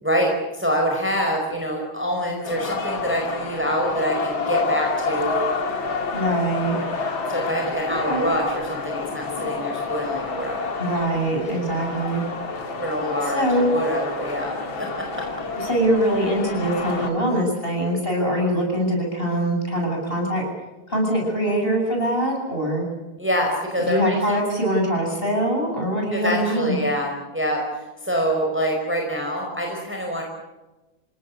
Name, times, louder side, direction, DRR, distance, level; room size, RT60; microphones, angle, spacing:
voice 1, 0.0-5.4 7.3-10.7 11.7-11.9 12.8-14.5 14.8-15.2 23.2-24.2 26.1-30.2, equal, 5° right, 0 dB, 4.8 m, -25 dB
sound 1, 2.4-17.1, left 4 dB, 70° left, 3.1 m, -29 dB
voice 2, 6.1-6.8 7.9-8.3 10.8-12.2 13.3-13.7 15.6-20.5 20.9-22.8 23.9-26.8, right 1 dB, 25° left, 1 dB, 8.4 m, -23 dB
29.0 x 18.5 x 8.4 m, 1.1 s
omnidirectional pair, 2.2 m